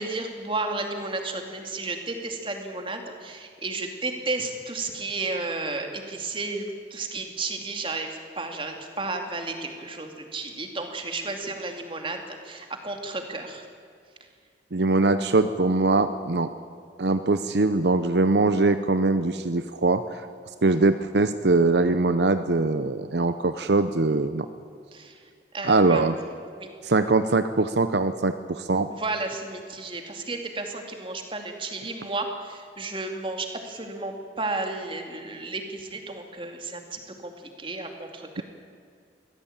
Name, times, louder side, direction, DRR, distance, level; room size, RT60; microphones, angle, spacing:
voice 1, 0.0-6.6 6.9-13.6 24.9-25.1 25.5-26.0 26.6-26.7 28.9-37.3 37.6-38.4, right 3 dB, 30° right, 4 dB, 2.6 m, -33 dB
voice 2, 14.7-16.5 17.0-20.2 20.6-24.5 25.6-26.2 26.8-28.9, right 3 dB, 70° right, 10 dB, 0.8 m, -22 dB
23.5 x 16.5 x 8.9 m, 2.3 s
head